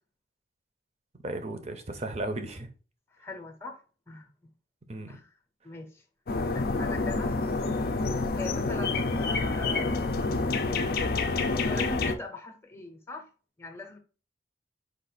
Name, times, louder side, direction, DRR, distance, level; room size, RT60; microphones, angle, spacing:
voice 1, 1.2-2.7 4.9-5.2, right 2 dB, 35° right, 0.7 m, -35 dB
voice 2, 3.2-3.8 4.1-4.3 5.1-5.3 5.6-5.9 6.5-7.3 8.4-10.0 11.4-13.2 13.6-14.0, left 2 dB, 15° left, 0.8 m, -40 dB
sound 1, 6.3-12.2, left 3 dB, 50° left, 0.5 m, -28 dB
5.0 x 2.5 x 3.9 m
head